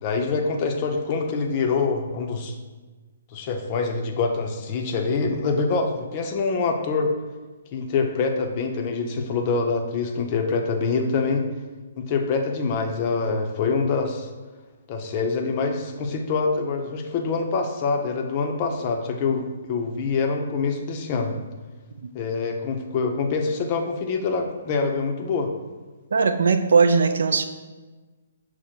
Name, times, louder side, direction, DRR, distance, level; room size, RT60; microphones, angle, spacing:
voice 1, 0.0-2.5 3.3-7.1 7.7-11.5 12.0-14.3 14.9-21.3 22.1-25.5, left 4 dB, 35° left, 3 dB, 0.5 m, -25 dB
voice 2, 26.1-27.4, right 5 dB, 70° right, 9 dB, 0.3 m, -19 dB
5.6 x 2.1 x 4.4 m, 1.3 s
figure-of-eight pair, 130°, 0 cm